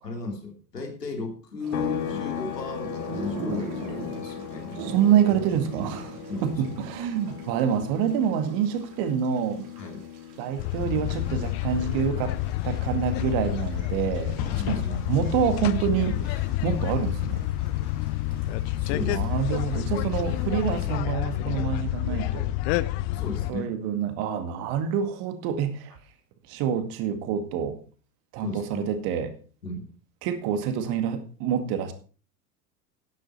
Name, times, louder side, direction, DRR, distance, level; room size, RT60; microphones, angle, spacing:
voice 1, 0.0-4.8 6.3-6.5 9.8-10.0 14.4-15.3 18.8-19.3 23.1-23.7 28.4-28.8 29.6-29.9, left 3 dB, 80° left, 3.0 m, -35 dB
sound 1, 1.6-20.8, right 4 dB, 65° right, 3.8 m, -43 dB
sound 2, 1.7-15.3 15.6-17.8, left 11 dB, 60° left, 1.5 m, -40 dB
voice 2, 4.8-6.2 6.4-9.7 10.4-12.3 12.6-17.4 19.0-22.5 23.5-26.0 26.5-27.8 28.3-29.3 30.2-31.9, right 8 dB, 45° right, 2.1 m, -27 dB
sound 3, 10.6-23.5, left 15 dB, 45° left, 0.7 m, -28 dB
11.5 x 10.0 x 4.3 m
figure-of-eight pair, 80°, 48 cm